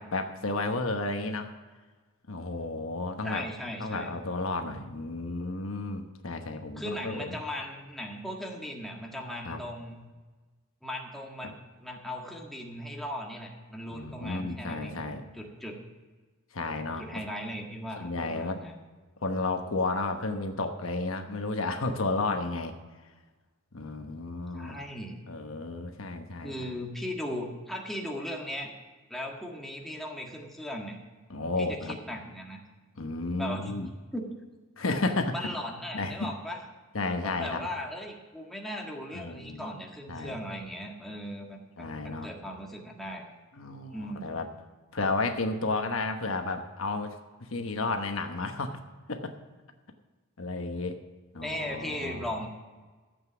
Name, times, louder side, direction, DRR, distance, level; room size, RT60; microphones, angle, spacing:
voice 1, 0.0-1.5 2.3-3.4 3.8-7.4 9.4-9.6 13.9-15.2 16.5-17.0 18.0-18.6 19.2-22.7 23.7-24.8 25.3-26.7 31.3-32.0 33.0-33.9 34.8-35.3 35.9-36.3 36.9-37.7 39.1-39.7 40.1-40.4 41.8-42.3 43.5-44.5 44.9-47.1 47.4-48.8 49.1-49.3 50.4-51.0 51.3-52.3, left 3 dB, 75° left, 5 dB, 1.1 m, -32 dB
voice 2, 3.2-4.1 6.8-10.0 10.8-15.1 15.3-15.8 17.0-18.8 24.5-25.2 26.4-28.7 29.1-31.0 31.6-32.6 33.4-33.7 34.1-34.3 35.3-36.6 37.2-43.2 43.9-44.4 51.4-52.5, equal, ahead, -1 dB, 1.6 m, -38 dB
13.5 x 8.2 x 6.1 m, 1.3 s
head